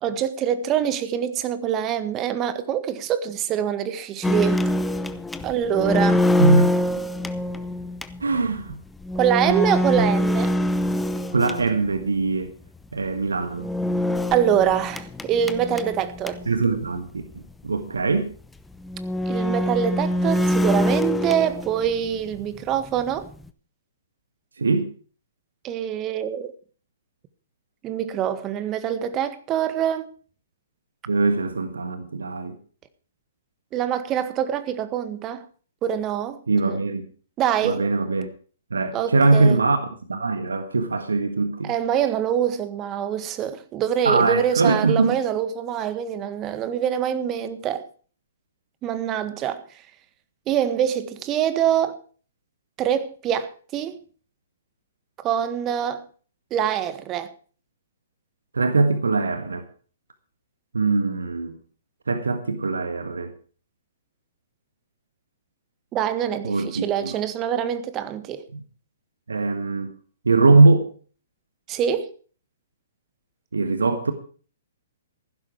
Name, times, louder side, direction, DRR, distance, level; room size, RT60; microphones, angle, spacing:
voice 1, 0.0-4.6 5.4-6.2 9.1-10.5 14.3-16.4 19.3-23.3 25.6-26.5 27.8-30.0 33.7-35.4 35.8-36.4 36.6-36.8 37.4-37.9 38.9-39.6 41.6-47.9 48.8-49.6 50.5-52.0 52.8-54.0 55.2-56.0 56.5-57.3 65.9-68.4 71.7-72.1, right 9 dB, 25° right, 1.7 m, -24 dB
sound 1, 4.2-12.1 13.5-16.6 17.0-17.1 17.3-17.4 18.2-18.3 18.8-22.1 22.3-23.5, left 1 dB, 5° left, 0.9 m, -24 dB
voice 2, 6.4-6.7 8.2-8.8 9.5-9.6 11.3-12.5 12.9-13.7 16.5-17.1 17.6-18.3 24.6-24.9 31.1-32.5 36.5-37.1 37.6-38.3 38.7-39.8 40.1-41.7 44.0-45.2 58.5-59.6 60.7-61.6 62.1-63.3 66.4-67.1 69.3-69.9 70.2-70.9 73.5-74.1, right 3 dB, 80° right, 1.6 m, -21 dB
15.5 x 12.0 x 4.8 m
figure-of-eight pair, 120°, 0 cm